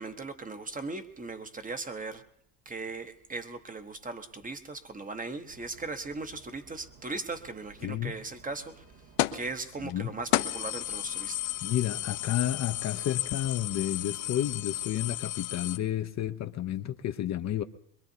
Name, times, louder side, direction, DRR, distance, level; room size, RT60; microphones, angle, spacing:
voice 1, 0.0-2.2 2.7-8.8 9.3-11.4, right 3 dB, 15° right, 9 dB, 0.9 m, -38 dB
sound 1, 5.5-15.2, right 4 dB, 80° right, 2.3 m, -56 dB
voice 2, 7.8-8.1 9.8-10.1 11.6-17.6, left 11 dB, 35° left, 7 dB, 0.6 m, -31 dB
sound 2, 9.2-9.5 9.9-10.0 10.3-15.8, left 16 dB, 80° left, 0.8 m, -32 dB
23.5 x 22.0 x 2.7 m, 0.71 s
supercardioid pair, 95°, 47 cm